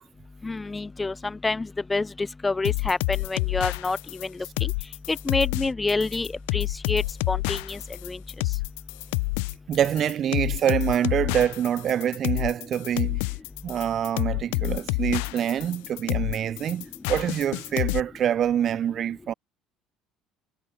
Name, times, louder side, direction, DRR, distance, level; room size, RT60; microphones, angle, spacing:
voice 1, 0.4-4.7 5.1-7.0 7.3-8.2, left 3 dB, 15° left, 0.6 m, -28 dB
sound 1, 2.6-18.0, left 34 dB, 90° left, 0.6 m, -28 dB
voice 2, 9.7-13.2 13.6-19.3, right 10 dB, 50° right, 0.6 m, -26 dB
supercardioid pair, 100°, 0 cm